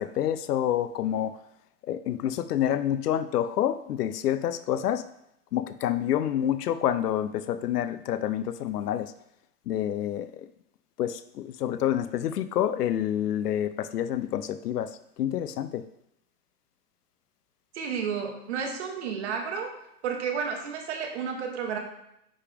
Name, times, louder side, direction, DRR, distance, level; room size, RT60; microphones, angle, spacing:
voice 1, 0.0-1.3 1.8-5.0 5.5-9.1 9.7-10.3 11.0-14.9 15.2-15.8, left 10 dB, 80° left, 13 dB, 0.6 m, -28 dB
voice 2, 17.7-19.7 20.0-21.8, right 6 dB, 45° right, 3 dB, 1.3 m, -31 dB
9.7 x 3.5 x 3.4 m, 0.79 s
hypercardioid pair, 165°, 46 cm